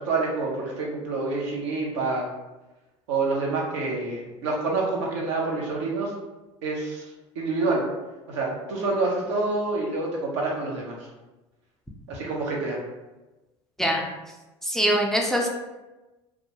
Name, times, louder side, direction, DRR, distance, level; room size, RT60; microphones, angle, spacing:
voice 1, 0.0-2.3 3.1-6.1 6.6-7.1 7.4-7.8 8.3-11.0 12.1-12.8, right 3 dB, 75° right, -3 dB, 0.7 m, -27 dB
voice 2, 14.6-15.5, equal, 5° left, 0 dB, 0.4 m, -23 dB
2.3 x 2.1 x 2.8 m, 1.1 s
hypercardioid pair, 70°, 15 cm